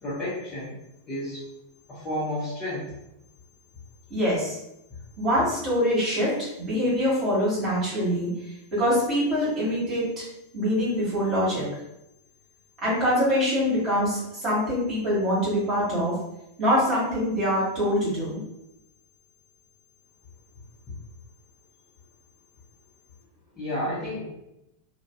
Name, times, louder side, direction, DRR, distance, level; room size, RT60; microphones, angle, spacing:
voice 1, 0.0-0.8 1.1-1.4 1.9-2.9 23.6-24.2, left 1 dB, 25° left, -10 dB, 0.9 m, -31 dB
voice 2, 4.1-4.6 5.2-8.3 8.7-10.2 10.5-11.6 12.8-16.2 16.6-18.4, equal, 30° right, -8 dB, 1.3 m, -24 dB
2.5 x 2.3 x 2.2 m, 0.86 s
figure-of-eight pair, 90°, 0 cm